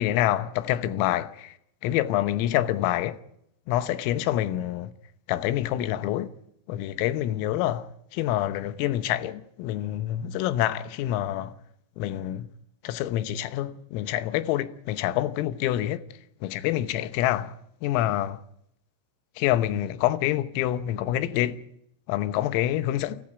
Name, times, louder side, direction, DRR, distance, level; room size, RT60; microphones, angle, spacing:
voice 1, 0.0-1.5 1.8-3.2 3.7-4.9 5.3-6.3 6.7-11.5 12.0-12.5 12.8-16.0 16.4-17.6 17.8-18.4 19.4-21.6 22.1-23.2, left 13 dB, 85° left, 3.7 m, -27 dB
29.5 x 24.0 x 4.9 m
omnidirectional pair, 5.9 m